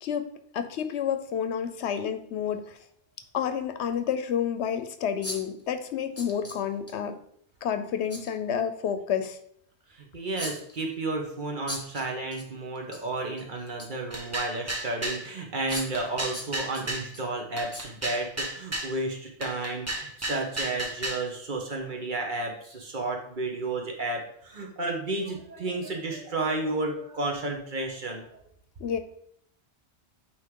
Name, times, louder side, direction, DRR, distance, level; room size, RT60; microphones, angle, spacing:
voice 1, 0.0-2.8 3.3-7.2 7.6-9.4 28.8-29.0, left 8 dB, 85° left, 9 dB, 0.9 m, -30 dB
sound 1, 1.3-1.4 3.2-3.3 3.9-4.0 5.2-5.6 6.2-6.9 8.1-8.3 10.4-10.9 11.7-12.5 12.8-13.0 13.4-14.0 14.7-14.8 15.7-16.1 16.3-17.2 17.7-17.9 18.3-18.4, left 1 dB, 15° left, 1.0 m, -39 dB
voice 2, 10.0-28.3, right 2 dB, 50° right, 1 dB, 1.2 m, -32 dB
sound 2, 14.1-15.2 15.7-17.1 17.6-18.9 19.4-21.3, right 1 dB, 20° right, 0.6 m, -33 dB
8.9 x 3.2 x 3.7 m, 0.67 s
omnidirectional pair, 1.1 m